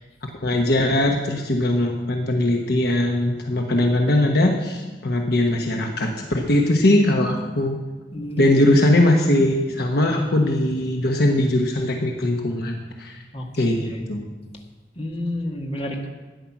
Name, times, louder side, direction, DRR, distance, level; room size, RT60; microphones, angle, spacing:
voice 1, 0.4-7.8 8.4-13.2 13.6-14.2, left 1 dB, 60° left, 2 dB, 1.1 m, -20 dB
voice 2, 8.1-8.5 13.3-13.6 13.9-14.1 15.0-16.1, left 1 dB, 35° left, 0 dB, 1.9 m, -30 dB
13.0 x 9.9 x 6.0 m, 1.2 s
head